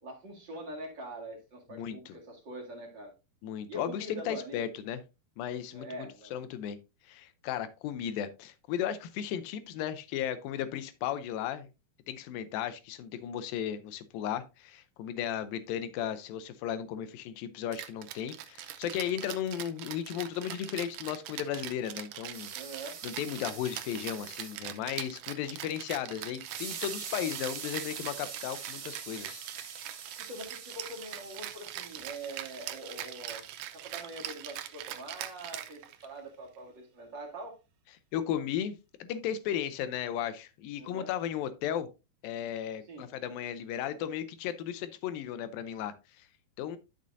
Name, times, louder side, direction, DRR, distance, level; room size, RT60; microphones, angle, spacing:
voice 1, 0.0-3.1 3.7-4.6 5.7-6.3 22.5-23.0 30.3-37.6 40.8-41.1 42.8-43.1, right 1 dB, 35° right, 2.0 m, -44 dB
voice 2, 1.7-2.1 3.4-5.0 5.4-5.9 6.3-6.8 7.0-11.7 12.1-22.5 23.0-29.4 38.1-38.8 39.0-41.9 42.2-46.3 46.6-46.8, left 10 dB, 80° left, 2.1 m, -35 dB
Rattle (instrument), 17.7-36.2, right 12 dB, 85° right, 1.9 m, -42 dB
sound 1, 22.3-24.6 26.4-34.8, right 7 dB, 55° right, 2.8 m, -45 dB
11.0 x 6.2 x 2.6 m
omnidirectional pair, 4.6 m